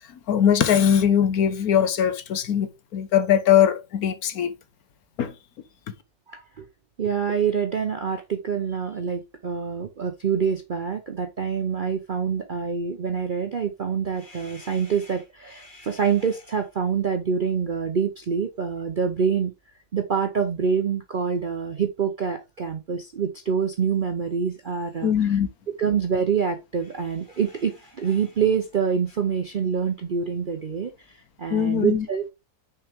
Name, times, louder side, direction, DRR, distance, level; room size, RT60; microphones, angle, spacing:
voice 1, 0.1-4.5 5.2-5.3 25.0-25.5 31.5-32.1, left 9 dB, 70° left, 1.3 m, -21 dB
voice 2, 6.3-6.7 7.0-19.5 19.9-25.4 25.8-32.3, right 6 dB, 55° right, 0.6 m, -26 dB
5.8 x 4.6 x 3.5 m
omnidirectional pair, 1.7 m